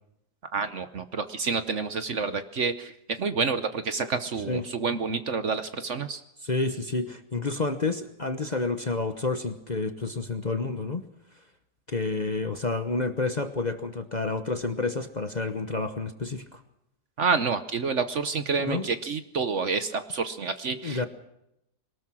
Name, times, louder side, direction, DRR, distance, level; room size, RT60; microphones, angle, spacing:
voice 1, 0.5-2.9 3.2-6.2 17.2-21.1, right 5 dB, 50° right, 11 dB, 1.1 m, -28 dB
voice 2, 6.4-11.0 11.9-16.6 18.6-18.9 20.8-21.1, left 3 dB, 30° left, 8 dB, 1.0 m, -29 dB
22.0 x 19.5 x 6.2 m, 0.81 s
omnidirectional pair, 1.8 m